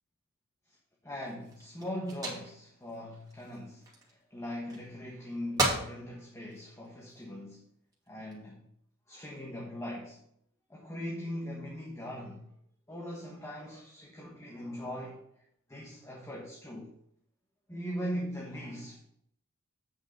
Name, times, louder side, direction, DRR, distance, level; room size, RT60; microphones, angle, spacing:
voice 1, 1.0-7.6 8.1-8.6 9.1-10.2 10.7-12.5 12.9-15.2 15.7-16.9 17.7-19.0, equal, 15° left, -2 dB, 1.3 m, -40 dB
sound 1, 1.1-4.2 4.7-5.3 5.6-5.9 6.5-7.2 7.9-8.3, right 2 dB, 20° right, 2.6 m, -35 dB
8.7 x 5.6 x 5.2 m, 0.69 s
head